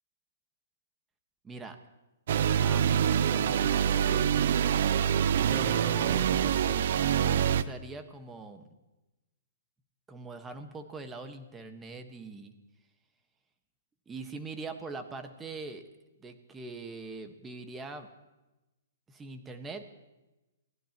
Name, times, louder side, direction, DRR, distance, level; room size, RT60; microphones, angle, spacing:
voice 1, 1.4-1.8 2.6-4.3 5.5-6.9 7.2-8.6 10.1-12.5 14.1-15.8 16.2-18.1 19.1-19.8, right 3 dB, 15° right, 7 dB, 1.4 m, -42 dB
sound 1, 2.3-7.6, right 9 dB, 60° right, 0.5 m, -25 dB
28.0 x 16.0 x 3.0 m, 1.0 s
hypercardioid pair, 135°, 0 cm